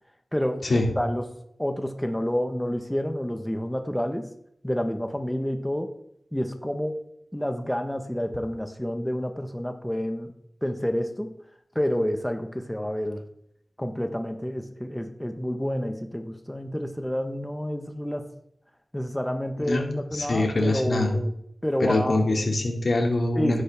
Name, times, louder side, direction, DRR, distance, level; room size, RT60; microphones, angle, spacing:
voice 1, 0.3-1.3 1.6-4.3 4.6-5.9 6.3-7.0 7.3-10.3 10.6-11.4 11.7-13.2 13.8-18.3 18.9-21.3 21.6-22.2 23.4-23.6, equal, 10° left, 6 dB, 1.4 m, -29 dB
voice 2, 19.7-21.2 21.8-23.6, left 2 dB, 75° left, 1 dB, 2.7 m, -24 dB
13.0 x 10.5 x 3.7 m, 0.74 s
cardioid pair, 50°, 0 cm